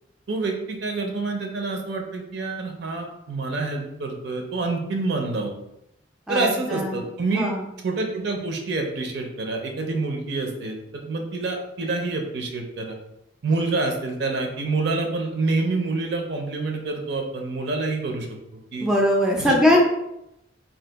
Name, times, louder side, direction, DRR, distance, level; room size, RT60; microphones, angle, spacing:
voice 1, 0.3-5.5 6.3-7.5 7.8-13.0 13.4-18.3 18.7-18.9 19.4-19.8, right 3 dB, 60° right, 3 dB, 0.5 m, -27 dB
voice 2, 6.3-7.0 7.3-7.7 18.1-18.2 18.8-19.8, left 1 dB, 5° right, -1 dB, 0.3 m, -21 dB
2.8 x 2.3 x 3.4 m, 0.84 s
head